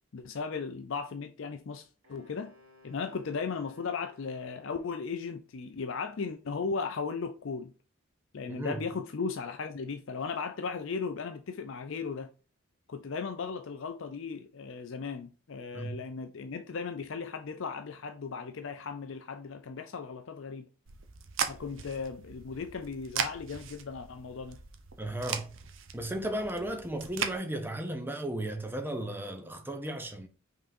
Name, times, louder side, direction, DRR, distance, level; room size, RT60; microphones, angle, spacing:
voice 1, 0.1-2.5 2.8-7.7 8.3-12.3 12.9-20.7 21.5-24.6, left 5 dB, 60° left, 0.5 m, -36 dB
Wind instrument woodwind instrument, 2.0-5.2, left 3 dB, 80° right, 2.4 m, -59 dB
voice 2, 8.5-8.8 15.7-16.0 25.0-25.5 25.9-30.3, right 1 dB, 10° right, 0.7 m, -35 dB
sound 1, 20.9-27.4, right 7 dB, 60° right, 0.7 m, -38 dB
5.4 x 3.7 x 2.6 m
head